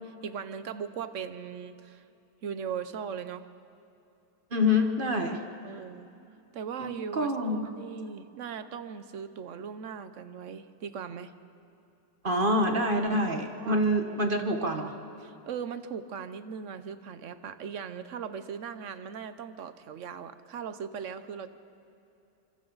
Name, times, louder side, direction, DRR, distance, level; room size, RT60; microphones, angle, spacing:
voice 1, 0.2-2.0 2.4-3.4 5.6-6.1 6.5-11.3 13.6-13.8 14.1-14.2 15.2-21.5, right 7 dB, 55° right, 11 dB, 0.9 m, -39 dB
voice 2, 4.5-5.4 6.8-7.7 12.2-14.9, left 1 dB, 35° right, 4 dB, 1.3 m, -26 dB
26.0 x 25.5 x 4.0 m, 2.7 s
omnidirectional pair, 1.8 m